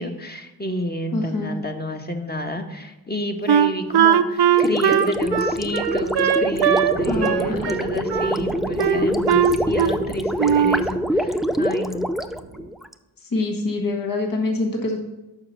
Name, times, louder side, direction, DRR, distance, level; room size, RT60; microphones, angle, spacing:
voice 1, 0.0-12.1, equal, 25° left, 4 dB, 1.3 m, -30 dB
voice 2, 1.1-1.6 7.1-7.6 13.3-15.0, left 2 dB, 60° left, 2 dB, 1.5 m, -25 dB
Wind instrument woodwind instrument, 3.5-6.9 7.2-8.4 8.8-10.1 10.4-10.9, right 9 dB, 85° right, 0.6 m, -19 dB
Gurgling, 4.5-12.9, equal, ahead, 0.5 m, -25 dB
sound 1, 5.2-12.7, right 4 dB, 40° right, 0.7 m, -36 dB
6.9 x 5.6 x 6.9 m, 0.99 s
cardioid pair, 40°, 38 cm